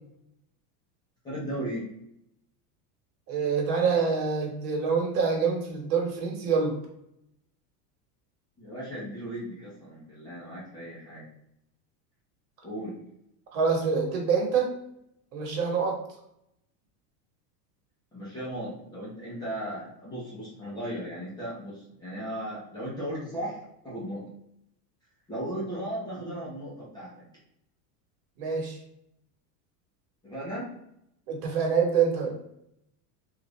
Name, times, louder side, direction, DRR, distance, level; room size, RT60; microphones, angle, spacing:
voice 1, 1.2-1.9 8.6-11.2 12.6-13.0 18.1-23.6 23.8-24.2 25.3-27.2 30.2-30.7, equal, 10° left, -9 dB, 0.7 m, -36 dB
voice 2, 3.3-6.7 13.5-14.7 15.3-16.0 28.4-28.8 31.3-32.3, right 5 dB, 80° right, 0 dB, 1.3 m, -26 dB
3.3 x 2.5 x 3.1 m, 0.77 s
supercardioid pair, 175°, 47 cm